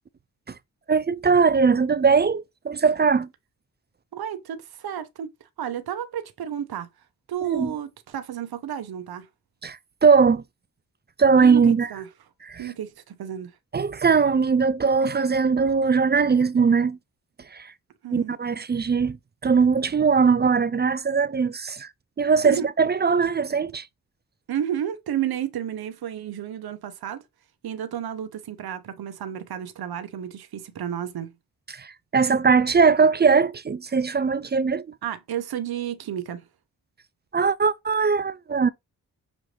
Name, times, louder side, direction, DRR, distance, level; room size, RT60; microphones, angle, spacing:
voice 1, 0.9-3.3 7.5-7.7 9.6-10.4 11.2-11.9 12.5-12.6 13.7-17.0 17.5-17.7 18.1-19.2 19.4-21.9 22.2-23.9 31.7-34.8 37.3-38.7, right 5 dB, 30° right, 0.3 m, -20 dB
voice 2, 4.1-6.9 7.3-9.3 11.4-12.1 12.6-13.6 18.0-18.4 22.4-22.7 24.5-27.2 27.6-31.3 35.0-36.5, right 9 dB, 70° right, 0.7 m, -32 dB
6.1 x 2.5 x 3.2 m
cardioid pair, 45°, 39 cm